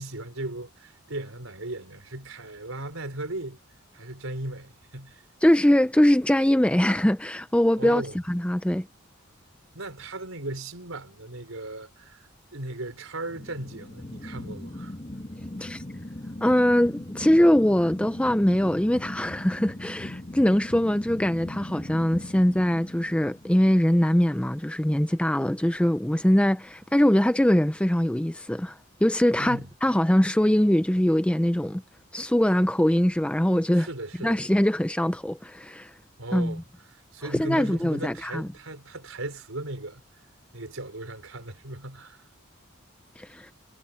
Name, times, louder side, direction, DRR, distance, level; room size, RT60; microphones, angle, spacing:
voice 1, 0.0-3.6 3.9-5.2 7.8-8.2 9.7-14.9 29.4-29.7 33.7-34.4 36.2-36.6 36.9-40.2 40.5-42.3, right 2 dB, 85° right, 4.2 m, -37 dB
voice 2, 5.4-8.0 8.3-8.9 15.6-15.8 16.4-31.8 32.1-33.9 34.2-35.9 36.3-36.6 37.3-38.5 43.2-43.5, left 1 dB, 5° left, 0.5 m, -22 dB
sound 1, 13.3-24.2, left 1 dB, 30° left, 1.7 m, -39 dB
head